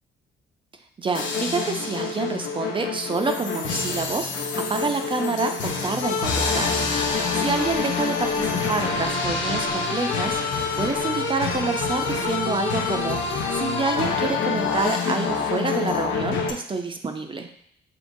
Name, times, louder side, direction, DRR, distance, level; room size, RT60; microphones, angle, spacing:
voice 1, 1.0-17.5, right 4 dB, 25° right, 6 dB, 0.5 m, -28 dB
sound 1, 1.1-16.5, left 4 dB, 75° left, 0.6 m, -26 dB
5.2 x 2.9 x 2.6 m, 0.63 s
cardioid pair, 90°, 20 cm